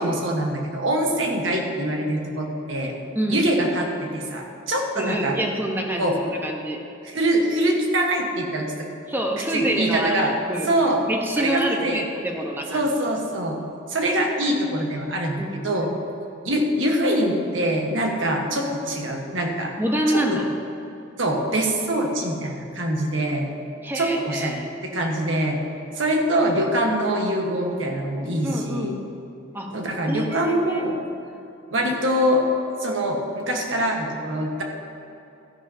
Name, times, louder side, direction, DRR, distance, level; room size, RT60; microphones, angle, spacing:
voice 1, 0.0-2.9 3.3-5.4 6.0-6.2 7.0-8.9 9.5-10.3 10.7-11.0 11.4-12.0 12.7-13.6 13.9-15.9 16.4-19.7 20.1-20.4 21.2-23.5 23.9-25.6 25.9-29.0 29.7-30.9 31.7-32.4 32.8-34.6, right 1 dB, 70° right, 1 dB, 1.4 m, -24 dB
voice 2, 3.1-3.5 5.0-6.8 9.1-10.7 11.1-12.9 15.4-15.6 19.8-20.5 23.8-24.7 28.4-29.0 29.5-29.8 30.1-30.9, equal, 10° right, 1 dB, 1.0 m, -26 dB
13.0 x 11.0 x 2.8 m, 2.8 s
head